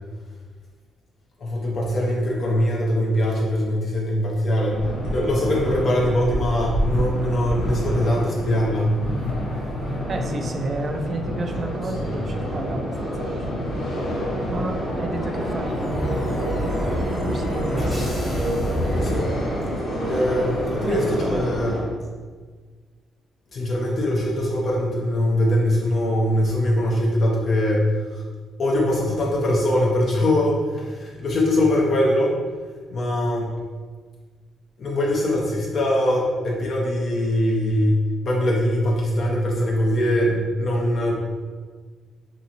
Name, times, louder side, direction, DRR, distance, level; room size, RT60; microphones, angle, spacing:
voice 1, 1.4-4.8 5.1-8.9 19.0-19.3 20.1-21.8 23.5-28.2 28.6-32.4 32.9-33.5 34.8-41.2, left 1 dB, 55° left, -3 dB, 0.5 m, -22 dB
sound 1, 4.7-21.8, equal, 85° left, 0.8 m, -28 dB
voice 2, 10.1-13.9 14.5-16.3 16.6-18.1 20.4-20.5 20.8-21.4, right 2 dB, 40° right, 4 dB, 0.3 m, -31 dB
sound 2, 14.8-19.8, equal, 20° left, 1.0 m, -29 dB
2.8 x 2.4 x 2.7 m, 1.5 s
cardioid pair, 90°, 0 cm